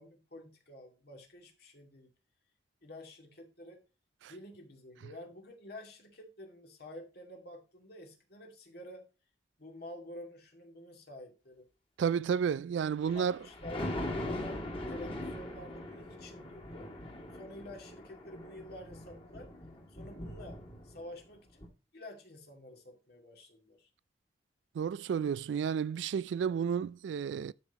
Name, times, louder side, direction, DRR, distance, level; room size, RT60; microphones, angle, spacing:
voice 1, 0.0-2.1 2.8-3.8 4.3-9.0 9.6-11.7 13.1-16.9 17.3-19.5 19.9-20.6 20.8-21.6 21.9-23.9, left 1 dB, 60° left, 2.2 m, -49 dB
voice 2, 12.0-13.4 24.8-27.5, right 7 dB, 75° right, 0.3 m, -31 dB
Thunder, 12.9-21.2 21.6-21.7, left 1 dB, 30° left, 2.3 m, -41 dB
12.0 x 5.5 x 2.9 m
head